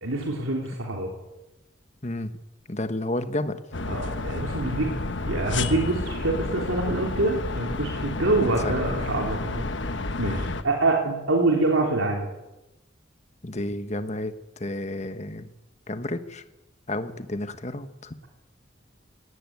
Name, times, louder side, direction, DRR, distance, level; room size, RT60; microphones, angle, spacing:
voice 1, 0.0-1.1 3.9-4.9 5.2-9.6 9.9-12.3, right 2 dB, 90° right, 0 dB, 3.4 m, -25 dB
voice 2, 2.7-3.6 8.3-8.7 10.0-10.5 13.4-15.5 15.9-16.4 16.9-18.2, left 1 dB, 35° left, 10 dB, 1.3 m, -31 dB
sound 1, 3.7-10.6, left 2 dB, 65° left, 1.3 m, -30 dB
18.0 x 17.5 x 9.6 m, 0.99 s
head